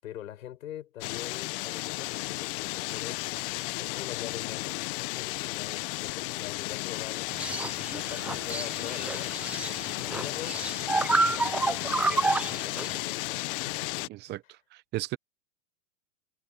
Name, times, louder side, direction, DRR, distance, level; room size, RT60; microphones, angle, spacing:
voice 1, 0.0-3.4 3.8-7.3 7.8-14.4, left 11 dB, 75° left, 7.4 m, -44 dB
sound 1, 1.0-14.1, left 23 dB, 40° left, 1.1 m, -34 dB
sound 2, 7.3-13.0, right 3 dB, 5° right, 0.4 m, -30 dB
voice 2, 14.1-15.2, right 17 dB, 25° right, 0.9 m, -36 dB
hypercardioid pair, 135°, 41 cm